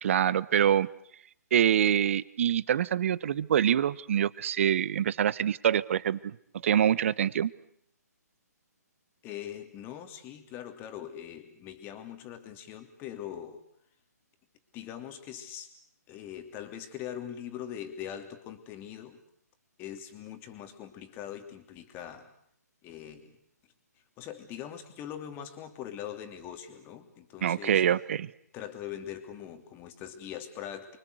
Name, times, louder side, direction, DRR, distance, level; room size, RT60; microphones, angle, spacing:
voice 1, 0.0-0.9 1.5-6.2 6.6-7.5 27.4-28.3, right 9 dB, 50° right, 19 dB, 1.1 m, -25 dB
voice 2, 9.2-13.6 14.7-15.8 16.1-19.2 19.8-22.3 22.8-23.4 24.2-27.8 28.5-31.0, left 10 dB, 20° left, 7 dB, 3.0 m, -42 dB
29.5 x 24.0 x 8.1 m, 0.67 s
figure-of-eight pair, 135°, 9 cm